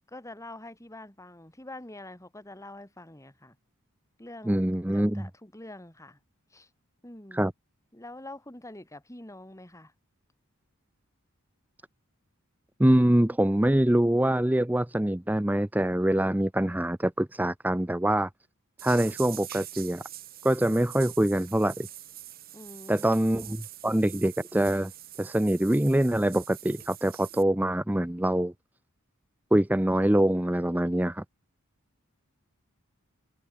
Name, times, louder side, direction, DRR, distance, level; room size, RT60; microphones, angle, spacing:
voice 1, 0.1-3.6 4.2-4.6 4.9-6.2 6.5-6.7 7.0-7.4 7.9-9.9 22.5-23.1, left 1 dB, 15° left, 3.2 m, -45 dB
voice 2, 4.4-5.3 7.3-7.5 12.8-18.3 18.8-20.0 20.4-21.9 22.9-24.9 25.2-28.5 29.5-31.2, right 1 dB, 5° right, 0.6 m, -24 dB
sound 1, 18.8-27.4, right 13 dB, 40° right, 4.7 m, -44 dB
head